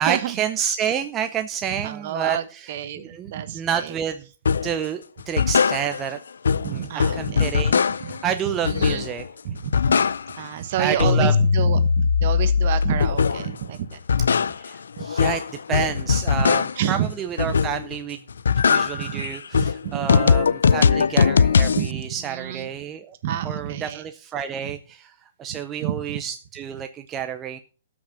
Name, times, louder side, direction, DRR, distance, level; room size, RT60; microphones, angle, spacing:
voice 1, 0.0-4.2 4.6-6.2 6.6-9.2 10.8-11.3 14.6-15.4 15.7-18.2 18.7-23.1 23.4-25.1 25.4-27.6, right 8 dB, 20° right, 7 dB, 0.6 m, -29 dB
voice 2, 1.7-3.9 6.6-7.4 8.0-8.1 8.6-9.0 9.4-10.0 10.4-14.0 15.0-15.1 16.8-17.1 17.4-17.5 18.9-20.2 21.8-22.7 23.2-24.0 24.6-24.7 25.5-26.2, right 10 dB, 45° right, 12 dB, 1.2 m, -29 dB
sound 1, 4.5-4.8 5.2-6.2 6.4-8.2 8.7-9.3 9.6-10.5 10.8-13.6 13.9-16.9 17.4-18.0 18.3-21.9, left 6 dB, 85° left, 0.4 m, -20 dB
12.5 x 6.1 x 5.6 m, 0.37 s
hypercardioid pair, 150°, 0 cm